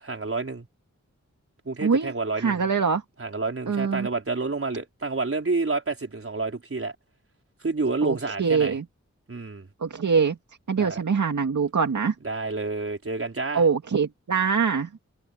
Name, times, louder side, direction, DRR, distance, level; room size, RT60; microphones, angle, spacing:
voice 1, 0.0-0.7 1.6-2.6 3.2-6.9 7.6-8.8 9.3-9.7 10.7-11.0 12.2-13.6, right 3 dB, 50° right, 4.8 m, -29 dB
voice 2, 1.8-2.1 2.4-3.0 3.7-4.1 8.0-8.8 9.8-10.4 10.7-12.1 13.5-14.9, right 5 dB, 85° right, 2.2 m, -23 dB
wide cardioid pair, 90°, 29 cm